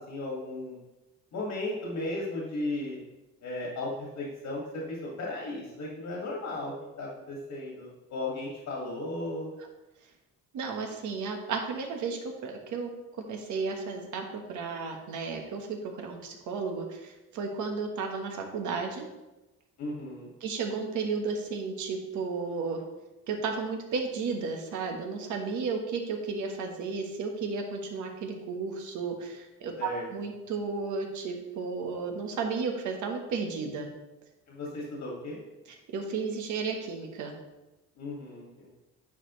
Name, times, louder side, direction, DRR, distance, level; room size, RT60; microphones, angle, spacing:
voice 1, 0.1-0.8 1.3-3.0 3.4-6.7 7.0-9.5 19.8-20.3 29.8-30.1 34.5-35.4 38.0-38.7, left 2 dB, 70° left, -3 dB, 2.1 m, -35 dB
voice 2, 10.5-12.9 13.3-19.1 20.4-22.8 23.3-33.9 35.9-37.4, right 4 dB, 75° right, 3 dB, 1.3 m, -33 dB
9.7 x 4.6 x 3.1 m, 1.0 s
cardioid pair, 90°, 30 cm